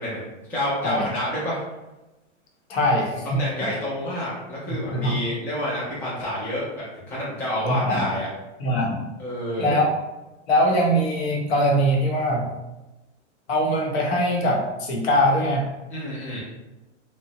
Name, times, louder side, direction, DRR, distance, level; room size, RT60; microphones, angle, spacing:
voice 1, 0.0-1.6 3.2-8.3 9.2-9.8 15.9-16.4, left 1 dB, 5° left, -8 dB, 0.4 m, -28 dB
voice 2, 2.7-3.4 4.9-5.2 7.6-8.1 8.6-9.0 9.6-9.9 10.5-12.5 13.5-15.7, equal, 55° left, -1 dB, 0.9 m, -22 dB
2.9 x 2.1 x 2.7 m, 1.0 s
hypercardioid pair, 135°, 37 cm